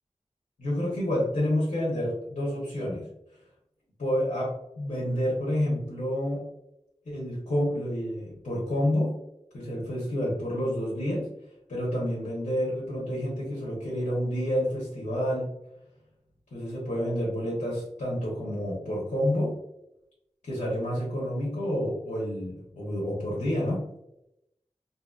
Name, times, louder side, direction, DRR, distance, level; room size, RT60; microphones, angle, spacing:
voice 1, 0.6-3.1 4.0-6.5 7.1-9.2 9.5-11.3 11.7-15.5 16.5-19.6 20.4-23.8, equal, 85° left, -7 dB, 0.8 m, -29 dB
2.7 x 2.6 x 2.3 m, 0.84 s
wide cardioid pair, 60°, 12 cm